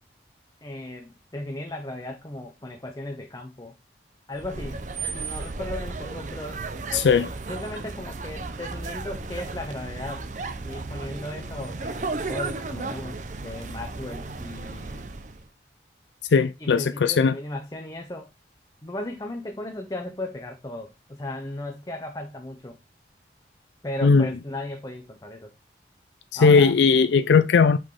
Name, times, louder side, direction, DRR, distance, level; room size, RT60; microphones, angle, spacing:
voice 1, 0.6-3.7 4.3-6.6 7.5-10.3 10.6-15.1 16.6-18.3 18.8-22.8 23.8-25.5 26.4-26.7, left 1 dB, 20° left, 0.8 m, -36 dB
sound 1, 4.3-15.5, right 3 dB, 45° right, 0.6 m, -34 dB
voice 2, 6.9-7.3 16.3-17.4 24.0-24.3 26.4-27.8, left 5 dB, 80° left, 0.4 m, -18 dB
5.8 x 5.0 x 3.7 m
head